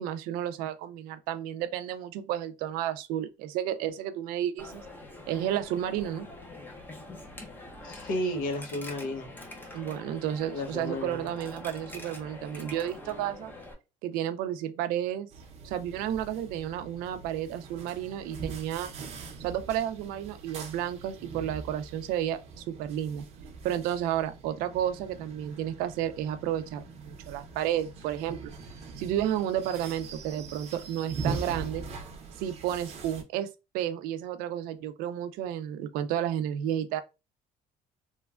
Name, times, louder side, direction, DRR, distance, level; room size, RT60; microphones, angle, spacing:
voice 1, 0.0-4.9 5.3-6.3 9.7-13.5 14.0-15.3 15.6-18.9 19.4-23.2 23.6-28.5 29.0-31.8 32.4-33.5 33.7-37.0, right 11 dB, 85° right, 0.4 m, -32 dB
Coin (dropping), 4.6-13.7, left 2 dB, 15° left, 0.6 m, -45 dB
voice 2, 7.8-9.3 10.5-11.3, left 1 dB, 70° left, 0.9 m, -33 dB
sound 1, 15.3-33.2, right 4 dB, 45° right, 0.7 m, -42 dB
3.1 x 2.2 x 2.3 m
cardioid pair, 140°, 15 cm